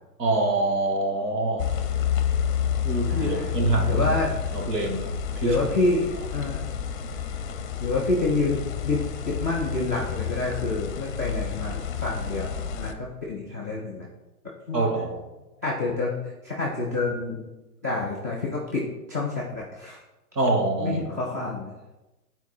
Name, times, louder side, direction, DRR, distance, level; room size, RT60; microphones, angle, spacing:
voice 1, 0.2-1.7 2.8-4.0 4.5-5.1 5.4-5.6 14.7-15.2 20.4-21.0, right 2 dB, 90° right, 0 dB, 2.3 m, -25 dB
sound 1, 1.6-12.9, left 8 dB, 30° left, 0.6 m, -29 dB
voice 2, 3.1-3.6 3.9-4.4 5.4-6.7 7.8-14.1 14.7-14.8 15.6-17.4 17.8-20.0 20.8-21.7, left 3 dB, 15° right, -6 dB, 0.3 m, -28 dB
8.7 x 4.4 x 4.8 m, 1.0 s
hypercardioid pair, 155°, 47 cm